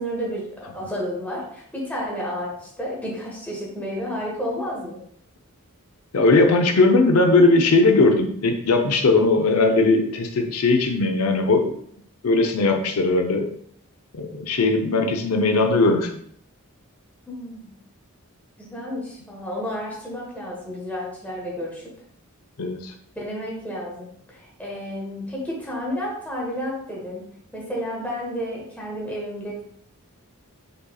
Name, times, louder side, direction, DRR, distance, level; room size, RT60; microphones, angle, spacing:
voice 1, 0.0-5.0 17.3-17.7 18.6-21.8 23.2-29.7, equal, 5° left, -4 dB, 1.2 m, -31 dB
voice 2, 6.1-11.8 12.2-13.5 14.1-16.2 22.6-22.9, left 3 dB, 85° left, 4 dB, 0.6 m, -19 dB
5.2 x 4.1 x 2.3 m, 0.67 s
head